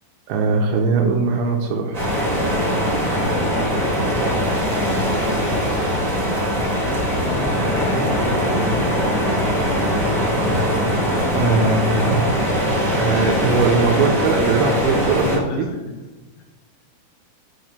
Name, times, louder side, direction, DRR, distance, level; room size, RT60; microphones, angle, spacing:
voice 1, 0.3-2.0 11.3-12.5 13.0-15.7, right 4 dB, 80° right, 2 dB, 2.9 m, -20 dB
sound 1, 1.9-15.4, equal, 30° right, 0.7 m, -21 dB
voice 2, 6.7-8.6 15.2-16.0, left 4 dB, 75° left, 0 dB, 2.8 m, -31 dB
10.0 x 3.7 x 6.6 m, 1.2 s
omnidirectional pair, 5.9 m